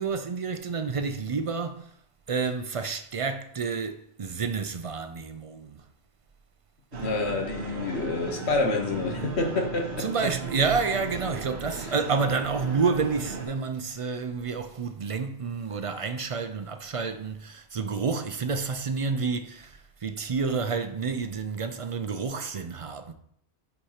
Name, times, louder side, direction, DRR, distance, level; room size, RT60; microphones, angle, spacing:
voice 1, 0.0-1.9 2.3-5.8 10.0-23.1, right 5 dB, 45° right, 0.4 m, -29 dB
voice 2, 6.9-10.1 11.8-11.9, left 3 dB, 85° left, 1.4 m, -28 dB
sound 1, 6.9-13.5, right 4 dB, 80° right, 1.2 m, -36 dB
8.3 x 4.7 x 2.9 m
omnidirectional pair, 1.1 m